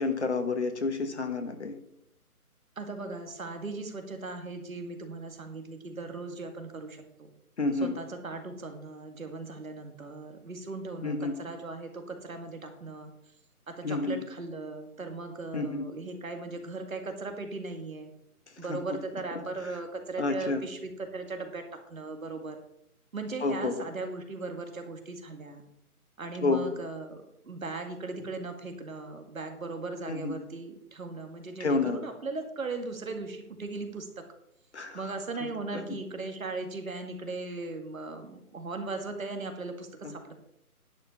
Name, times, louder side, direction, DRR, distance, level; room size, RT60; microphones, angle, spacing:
voice 1, 0.0-1.8 7.6-7.9 11.0-11.3 13.8-14.2 15.5-15.8 18.7-19.0 20.2-20.6 23.4-23.8 26.4-26.7 30.1-30.4 31.6-32.0 34.7-35.1 35.7-35.8, left 3 dB, 50° left, 7 dB, 1.4 m, -29 dB
voice 2, 2.8-7.3 7.8-13.1 13.7-18.1 18.6-21.6 21.9-22.6 23.1-25.6 26.2-34.1 34.9-40.4, right 3 dB, 60° right, 6 dB, 2.1 m, -38 dB
10.5 x 5.5 x 7.1 m, 0.76 s
figure-of-eight pair, 170°, 45 cm